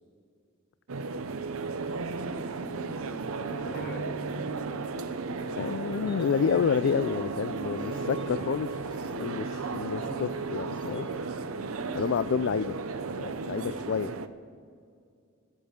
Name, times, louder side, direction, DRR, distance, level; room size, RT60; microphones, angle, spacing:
sound 1, 0.9-14.3, right 4 dB, 80° right, 0.7 m, -34 dB
sound 2, 1.9-6.5 7.3-8.8 9.1-10.4 10.7-10.8 11.3-12.6 13.4-14.1, right 1 dB, 5° right, 3.8 m, -45 dB
voice 1, 2.6-4.2 5.3-6.3, equal, 45° left, 2 dB, 1.8 m, -46 dB
voice 2, 5.6-8.8 9.2-11.1 11.9-12.8 13.2-14.1, left 6 dB, 60° left, 14 dB, 0.3 m, -29 dB
sound 3, 5.8-12.6, left 1 dB, 20° left, 1.4 m, -54 dB
14.0 x 8.4 x 7.7 m, 2.3 s
head